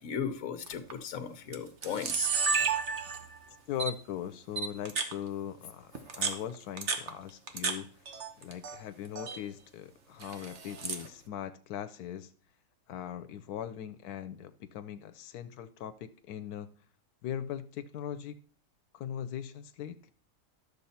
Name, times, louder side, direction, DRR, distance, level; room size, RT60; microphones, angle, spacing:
voice 1, 0.0-2.3, left 7 dB, 65° left, 10 dB, 1.3 m, -36 dB
Camera, 0.7-0.9 1.5-1.6 1.8-3.4 3.8-3.9 4.6-5.1 5.9-7.8 8.1-8.8 9.0-9.4 10.2-11.1, right 5 dB, 50° right, 1.3 m, -32 dB
voice 2, 3.7-5.9 6.1-7.9 8.4-12.3 12.9-16.7 17.2-18.4 18.9-20.1, left 10 dB, 90° left, 10 dB, 1.1 m, -40 dB
12.0 x 6.7 x 4.2 m, 0.43 s
omnidirectional pair, 1.6 m